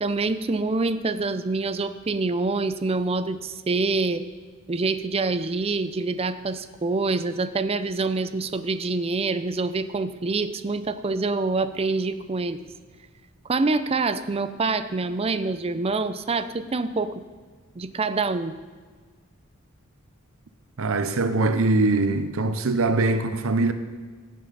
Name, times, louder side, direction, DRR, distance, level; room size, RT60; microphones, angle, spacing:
voice 1, 0.0-4.2 4.7-12.6 13.5-17.2 17.8-18.6, right 3 dB, 30° right, 0.5 m, -26 dB
voice 2, 20.8-23.7, right 2 dB, 70° right, 0.7 m, -22 dB
15.5 x 8.6 x 4.0 m
head